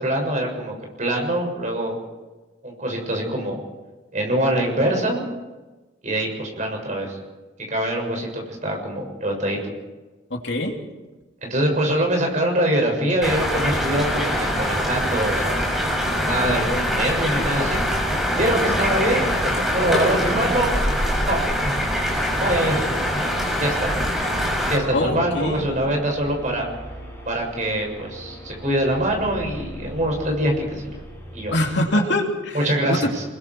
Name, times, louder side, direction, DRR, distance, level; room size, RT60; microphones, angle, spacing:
voice 1, 0.0-2.0 2.6-3.6 4.1-5.3 6.0-7.2 7.7-9.6 11.4-15.5 16.2-17.8 18.3-20.7 21.3-21.4 22.4-23.2 23.6-23.9 24.7-26.7 27.2-30.8 31.3-31.6 32.5-33.2, right 1 dB, 40° right, 1 dB, 6.7 m, -24 dB
voice 2, 10.3-10.8 24.9-25.7 31.5-32.6 32.9-33.1, left 1 dB, 65° left, 1 dB, 3.1 m, -23 dB
sound 1, 13.2-24.8, equal, ahead, 6.1 m, -23 dB
sound 2, 15.7-31.8, equal, 15° left, 6.7 m, -39 dB
29.0 x 21.5 x 4.8 m, 1.2 s
head